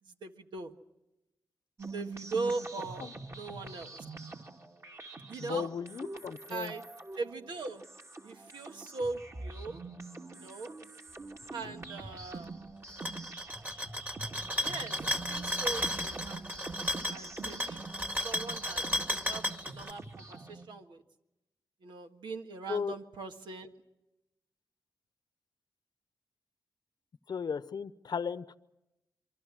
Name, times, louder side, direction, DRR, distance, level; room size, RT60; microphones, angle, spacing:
voice 1, 0.0-0.7 1.9-4.0 5.3-5.7 6.5-6.8 7.1-7.8 8.2-9.8 10.3-10.7 11.5-12.5 14.6-15.0 15.3-21.0 21.8-23.7, right 3 dB, 85° right, 5 dB, 1.7 m, -40 dB
sound 1, 1.8-20.7, right 3 dB, 40° right, 2.6 m, -45 dB
voice 2, 5.4-6.7 11.6-11.7 22.7-22.9 27.3-28.6, left 6 dB, 65° left, 15 dB, 0.9 m, -35 dB
sound 2, 12.9-19.9, left 1 dB, 20° right, 2.0 m, -34 dB
27.5 x 23.5 x 6.3 m, 0.93 s
cardioid pair, 60°, 8 cm